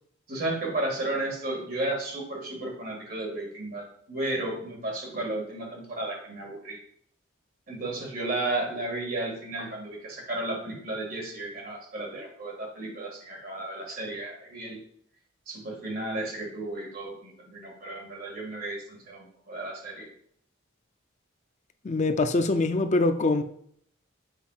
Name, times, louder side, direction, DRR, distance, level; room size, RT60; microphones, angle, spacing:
voice 1, 0.3-6.8 7.7-14.8 15.5-20.1, right 2 dB, 45° right, -1 dB, 1.9 m, -33 dB
voice 2, 21.8-23.4, left 2 dB, 35° left, 9 dB, 0.4 m, -24 dB
7.2 x 5.4 x 2.4 m, 0.66 s
head